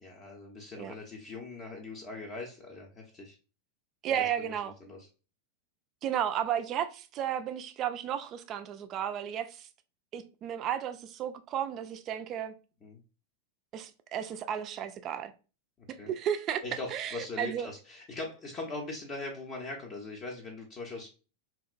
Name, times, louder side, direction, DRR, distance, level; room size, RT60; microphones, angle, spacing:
voice 1, 0.0-3.4 4.2-4.5 4.8-5.0 12.8-13.0 16.0-16.1 16.6-21.1, left 3 dB, 30° left, 0.6 m, -41 dB
voice 2, 4.0-4.7 6.0-9.7 10.1-12.5 13.7-15.3 16.1-16.6 16.9-17.7, right 9 dB, 35° right, 0.3 m, -33 dB
2.8 x 2.4 x 2.4 m
figure-of-eight pair, 90°, 0 cm